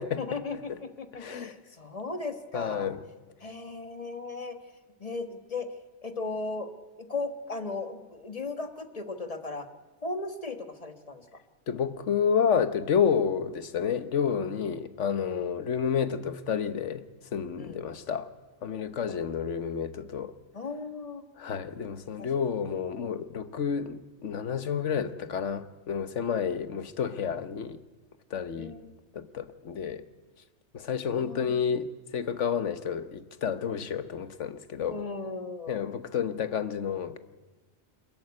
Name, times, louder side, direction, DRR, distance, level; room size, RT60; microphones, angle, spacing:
voice 1, 0.0-2.9 3.4-4.6 5.0-5.7 6.0-6.7 7.0-9.7 10.0-11.3 17.6-17.8 19.1-19.2 20.5-21.2 22.2-22.5 28.6-28.9 31.1-31.6 34.8-35.8, left 3 dB, 30° left, 8 dB, 1.4 m, -36 dB
voice 2, 1.1-1.5 2.5-3.0 11.7-17.0 17.3-18.3 18.6-20.3 21.4-27.8 28.3-28.7 29.1-30.0 30.7-35.0 35.7-37.2, left 7 dB, 80° left, 12 dB, 1.4 m, -30 dB
24.5 x 14.0 x 9.6 m, 1.2 s
omnidirectional pair, 1.2 m